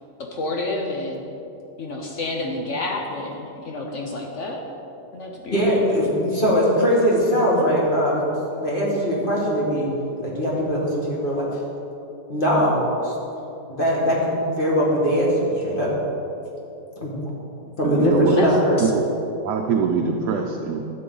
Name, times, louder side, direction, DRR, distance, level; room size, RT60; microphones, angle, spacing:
voice 1, 0.3-1.2 1.8-4.6 5.1-5.8 18.4-18.5 18.8-18.9, left 2 dB, 55° left, 1 dB, 0.9 m, -29 dB
voice 2, 5.5-8.2 8.6-9.9 10.2-11.5 12.3-13.1 13.7-15.9 17.0-17.1 17.8-18.8, equal, 30° left, -5 dB, 2.1 m, -21 dB
voice 3, 17.8-19.1 19.4-20.8, right 5 dB, 70° right, 2 dB, 1.1 m, -24 dB
11.5 x 7.6 x 3.9 m, 2.9 s
omnidirectional pair, 1.9 m